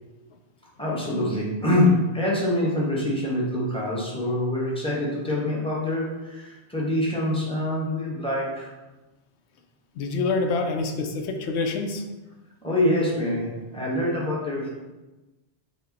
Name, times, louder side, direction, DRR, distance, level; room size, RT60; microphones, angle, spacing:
voice 1, 0.8-8.7 12.6-14.7, left 1 dB, 5° left, -5 dB, 0.8 m, -25 dB
voice 2, 10.0-12.0, left 3 dB, 75° left, 5 dB, 0.8 m, -26 dB
5.0 x 2.1 x 4.0 m, 1.1 s
omnidirectional pair, 1.2 m